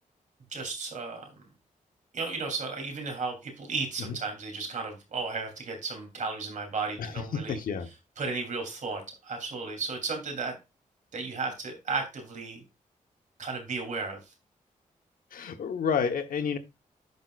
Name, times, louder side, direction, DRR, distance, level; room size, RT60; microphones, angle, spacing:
voice 1, 0.5-1.4 2.1-7.6 8.2-10.5 11.1-12.6 13.4-14.2, right 4 dB, 65° right, 3.0 m, -34 dB
voice 2, 7.0-7.9 15.3-16.6, left 6 dB, 85° left, 1.0 m, -30 dB
11.0 x 5.3 x 2.4 m
cardioid pair, 95°, 14 cm